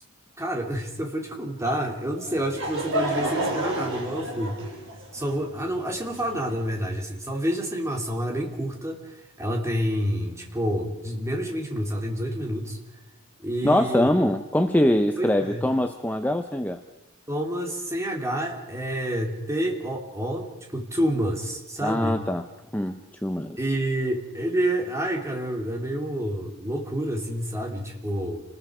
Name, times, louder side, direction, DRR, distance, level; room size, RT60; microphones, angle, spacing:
voice 1, 0.4-4.7 5.1-12.8 13.4-14.1 15.2-15.7 17.3-22.2 23.6-28.4, equal, 15° right, 1 dB, 3.0 m, -28 dB
Laughter / Crowd, 2.2-6.8, right 1 dB, 55° right, 5.7 m, -30 dB
voice 2, 13.6-16.8 21.8-22.4 22.7-23.6, left 1 dB, 5° left, 7 dB, 0.7 m, -23 dB
29.0 x 20.0 x 5.0 m, 0.96 s
head